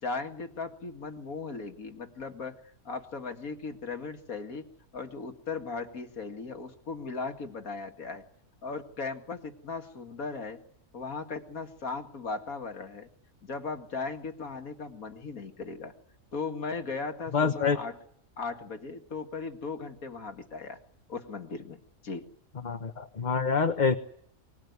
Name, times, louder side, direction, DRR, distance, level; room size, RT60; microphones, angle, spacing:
voice 1, 0.0-2.6 2.9-4.6 4.9-8.2 8.6-10.6 10.9-13.1 13.4-15.9 16.3-17.9 18.4-20.8 21.1-21.8 22.0-22.3, left 4 dB, 80° left, 6 dB, 2.5 m, -37 dB
voice 2, 17.3-17.8 22.6-24.0, left 5 dB, 35° left, 7 dB, 1.2 m, -26 dB
24.5 x 19.5 x 9.5 m, 0.67 s
omnidirectional pair, 1.5 m